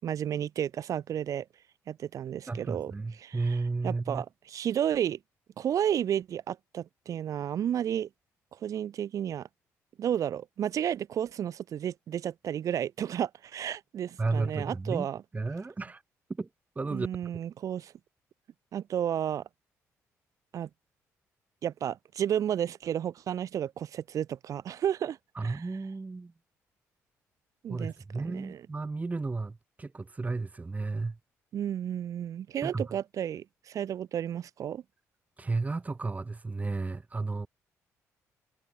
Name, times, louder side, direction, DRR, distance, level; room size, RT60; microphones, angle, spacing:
voice 1, 0.0-1.4 1.9-2.9 3.2-3.6 3.8-5.2 5.6-8.1 8.6-9.5 10.0-15.2 16.9-17.9 18.7-19.4 20.5-20.7 21.6-25.7 27.6-28.6 31.5-34.8, right 9 dB, 65° right, 4.7 m, -32 dB
voice 2, 2.5-4.2 14.2-15.1 15.3-16.0 16.3-16.5 16.7-17.1 25.3-26.3 27.7-31.2 32.6-32.9 35.4-37.5, right 3 dB, 25° right, 3.6 m, -33 dB
cardioid pair, 80°, 6 cm